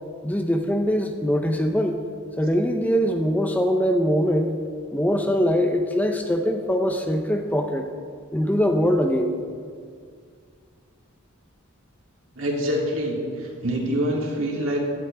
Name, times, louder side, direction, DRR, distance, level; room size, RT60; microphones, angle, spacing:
voice 1, 0.2-2.0 2.4-4.5 4.9-7.9 8.3-9.3, equal, 10° left, 5 dB, 0.6 m, -22 dB
voice 2, 12.4-14.8, equal, 65° right, -2 dB, 2.9 m, -25 dB
17.0 x 11.5 x 3.4 m, 2.1 s
head